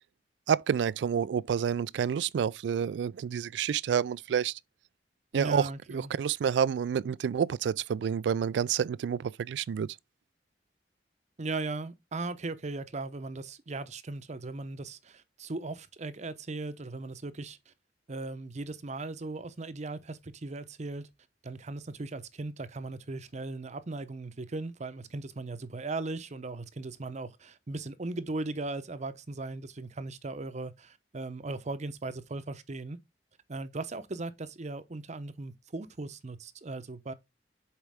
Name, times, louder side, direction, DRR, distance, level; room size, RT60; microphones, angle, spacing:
voice 1, 0.5-4.6 5.3-9.9, right 7 dB, 80° right, 0.3 m, -29 dB
voice 2, 5.3-6.1 11.4-17.7 18.1-21.1 21.4-33.0 33.5-37.1, right 2 dB, 40° right, 0.7 m, -38 dB
7.3 x 4.7 x 3.5 m
head